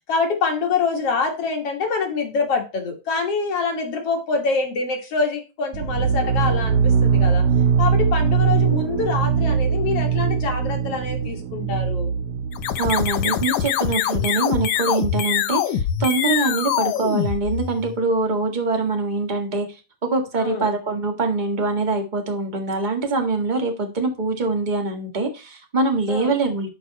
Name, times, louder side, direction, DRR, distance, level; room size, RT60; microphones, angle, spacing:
voice 1, 0.1-7.5 7.8-12.1 20.4-20.7 26.1-26.4, left 4 dB, 55° left, 3 dB, 2.5 m, -25 dB
sound 1, 5.7-13.4, right 7 dB, 85° right, 1.3 m, -21 dB
sound 2, 12.5-18.0, left 9 dB, 90° left, 2.4 m, -24 dB
voice 2, 12.8-19.7 20.0-26.7, right 3 dB, 20° right, 4 dB, 1.5 m, -24 dB
11.0 x 5.3 x 4.1 m, 0.29 s
omnidirectional pair, 3.4 m